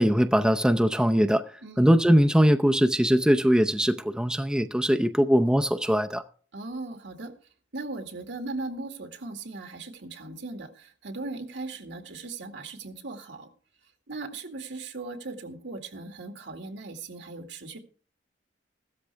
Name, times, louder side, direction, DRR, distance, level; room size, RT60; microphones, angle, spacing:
voice 1, 0.0-1.4 1.8-6.2, equal, 5° right, 0.6 m, -21 dB
voice 2, 6.5-7.4 7.7-13.5 14.1-17.8, right 3 dB, 80° right, 2.2 m, -38 dB
16.0 x 13.0 x 3.5 m
head